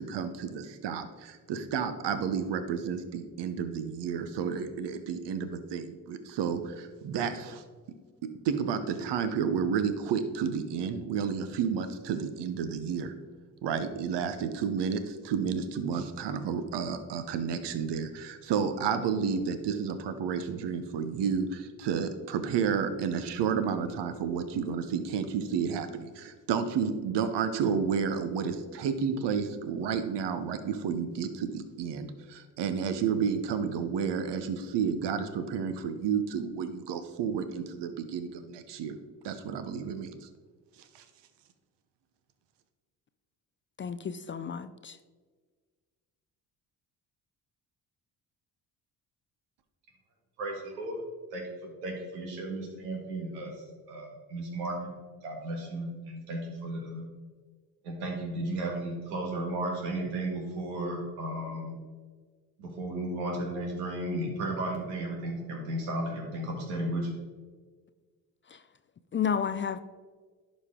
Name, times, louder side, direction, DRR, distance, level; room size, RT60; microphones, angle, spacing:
voice 1, 0.0-7.6 8.2-13.1 13.6-39.0 39.2-40.3 40.9-41.0, right 6 dB, 60° right, 10 dB, 1.0 m, -31 dB
voice 2, 43.8-45.0 69.1-69.8, left 7 dB, 25° left, 12 dB, 0.4 m, -31 dB
voice 3, 50.4-51.0 51.3-53.5 53.9-54.9 55.2-57.1 57.8-61.7 62.6-67.1, right 1 dB, 85° right, 0 dB, 1.8 m, -34 dB
11.0 x 5.3 x 3.7 m, 1.5 s
hypercardioid pair, 50°, 47 cm